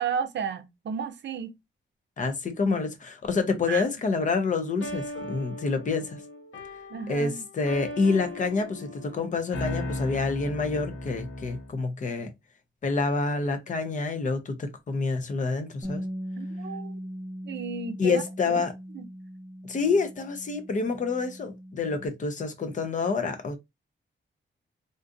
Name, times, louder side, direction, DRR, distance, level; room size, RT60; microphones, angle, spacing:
voice 1, 0.0-1.5 3.7-3.8 6.9-7.5 16.4-17.0 17.4-18.6 18.9-19.1, right 6 dB, 65° right, 0.5 m, -33 dB
voice 2, 2.2-6.2 7.1-12.3 12.8-16.0 18.0-18.7 19.6-23.6, left 4 dB, 40° left, 0.6 m, -27 dB
sound 1, 4.8-11.8, left 1 dB, 85° left, 1.0 m, -37 dB
Bass guitar, 15.8-22.1, equal, 15° right, 0.8 m, -39 dB
3.7 x 2.5 x 2.5 m
wide cardioid pair, 175°, 20 cm